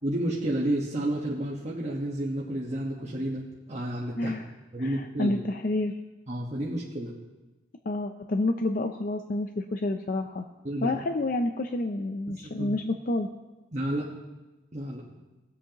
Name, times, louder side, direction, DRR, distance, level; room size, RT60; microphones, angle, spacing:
voice 1, 0.0-3.4 3.7-4.3 4.7-5.3 6.3-7.1 10.6-11.0 12.6-12.7 13.7-14.1 14.7-15.0, right 1 dB, 35° right, -5 dB, 1.2 m, -30 dB
voice 2, 4.8-5.9 7.9-10.4 10.8-13.3, left 2 dB, 45° left, 6 dB, 0.5 m, -29 dB
19.5 x 8.0 x 2.9 m, 1.1 s
head